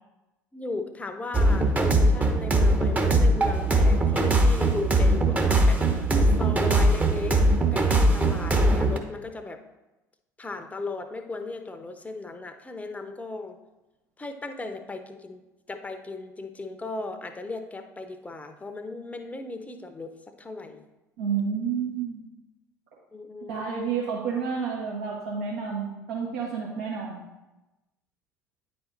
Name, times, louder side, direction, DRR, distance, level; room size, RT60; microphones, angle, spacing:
voice 1, 0.5-7.4 7.7-9.6 10.4-13.6 14.2-15.4 15.7-20.8 23.1-23.6, left 3 dB, 15° left, 8 dB, 0.7 m, -36 dB
sound 1, 1.3-9.0, right 1 dB, 15° right, 0.9 m, -21 dB
voice 2, 21.2-22.2 23.5-27.2, right 6 dB, 70° right, -5 dB, 1.3 m, -30 dB
9.4 x 4.2 x 3.9 m, 1.0 s
figure-of-eight pair, 60°, 10 cm